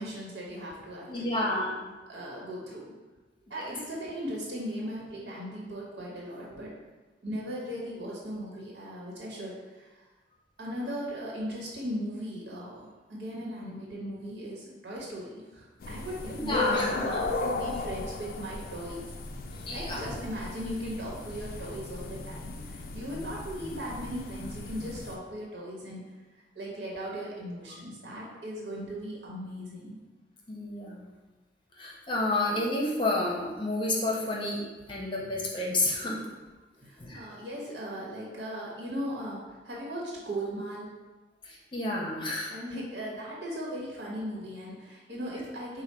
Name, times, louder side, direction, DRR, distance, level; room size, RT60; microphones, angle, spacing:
voice 1, 0.0-1.4 2.1-2.8 3.5-6.7 7.2-10.0 10.6-19.1 19.7-26.0 26.5-30.0 36.8-40.9 42.5-45.8, equal, 75° right, -4 dB, 1.2 m, -38 dB
voice 2, 1.1-1.9 3.6-3.7 16.3-17.2 19.5-20.0 30.5-31.1 31.8-34.6 34.9-36.3 37.0-37.2 41.4-42.5, left 2 dB, 30° left, -2 dB, 0.7 m, -30 dB
sound 1, 15.8-25.2, left 3 dB, 55° left, 0.4 m, -36 dB
4.9 x 2.2 x 4.3 m, 1.2 s
head